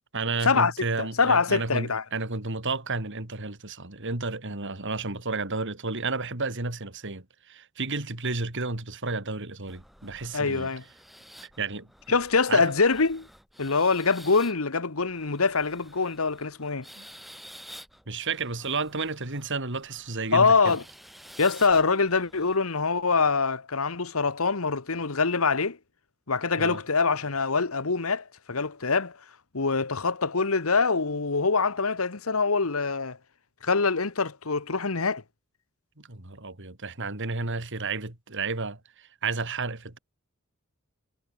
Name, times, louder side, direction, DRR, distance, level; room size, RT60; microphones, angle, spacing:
voice 1, 0.1-10.7 11.4-11.9 12.5-12.7 17.0-17.1 18.1-20.7 26.6-26.8 36.0-40.0, right 3 dB, 60° right, 3.3 m, -32 dB
voice 2, 1.0-2.0 10.3-10.8 12.1-13.3 13.6-16.8 20.3-20.8 21.4-25.8 26.3-29.2 29.5-33.2 33.6-35.2, left 4 dB, 75° left, 1.4 m, -24 dB
sound 1, 9.7-22.6, equal, ahead, 6.6 m, -51 dB
head